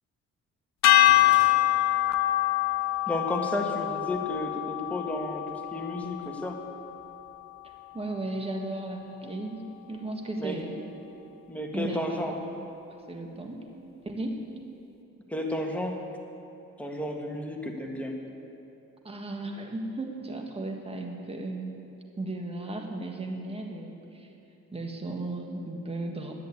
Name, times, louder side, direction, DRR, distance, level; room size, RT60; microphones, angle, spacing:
sound 1, 0.8-7.2, left 15 dB, 65° left, 0.6 m, -25 dB
Dishes pots and pans, 0.9-5.2 6.1-6.5 6.9-7.7 8.0-8.1, left 4 dB, 40° left, 2.6 m, -49 dB
voice 1, 3.1-6.6 10.4-10.6 11.5-12.3 15.3-16.0 16.8-18.2, left 1 dB, 5° left, 0 dB, 1.9 m, -32 dB
voice 2, 7.9-9.6 9.9-10.8 11.7-12.2 13.1-13.7 14.0-14.4 19.0-21.8 22.2-24.3 24.7-26.3, right 2 dB, 20° right, 2 dB, 1.7 m, -35 dB
10.5 x 10.5 x 8.4 m, 2.8 s
cardioid pair, 90°, 30 cm